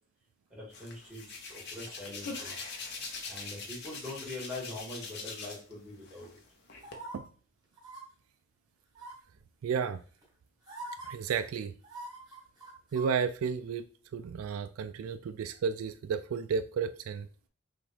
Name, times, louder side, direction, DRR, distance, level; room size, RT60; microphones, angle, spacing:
voice 1, 0.5-2.5 3.2-6.4, left 2 dB, 5° right, 2.0 m, -43 dB
Hands, 0.7-5.7 6.0-6.9, left 4 dB, 50° left, 0.9 m, -42 dB
sound 1, 6.8-7.2 7.8-8.0 8.9-9.3 10.2-10.3 10.7-11.1 11.8-13.1 13.4-13.5, right 2 dB, 20° right, 1.2 m, -44 dB
voice 2, 9.6-10.0 11.1-11.7 12.9-13.9 14.1-17.3, right 6 dB, 80° right, 0.3 m, -32 dB
5.8 x 2.6 x 3.3 m
head